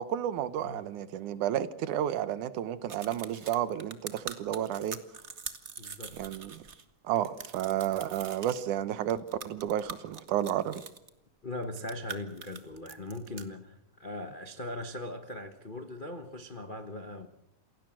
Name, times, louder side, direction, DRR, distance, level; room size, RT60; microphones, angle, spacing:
voice 1, 0.0-5.0 6.1-6.6 7.0-10.8, right 11 dB, 85° right, 14 dB, 2.6 m, -31 dB
sound 1, 2.9-6.8 7.2-8.6 9.1-11.1 11.6-13.4, right 5 dB, 45° right, 0.8 m, -43 dB
voice 2, 5.8-6.2 11.4-17.3, left 1 dB, 75° left, 7 dB, 0.4 m, -40 dB
28.0 x 17.0 x 7.7 m, 0.80 s
omnidirectional pair, 3.4 m